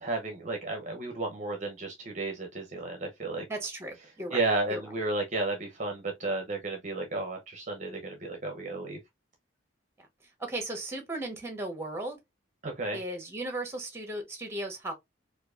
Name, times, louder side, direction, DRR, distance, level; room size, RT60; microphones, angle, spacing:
voice 1, 0.0-3.4 4.3-9.0 12.6-13.0, right 2 dB, 35° right, 0.6 m, -33 dB
voice 2, 3.5-4.4 4.7-4.9 10.0-10.1 10.4-12.2 12.9-14.9, right 1 dB, 15° right, 1.0 m, -36 dB
4.4 x 2.5 x 2.4 m
head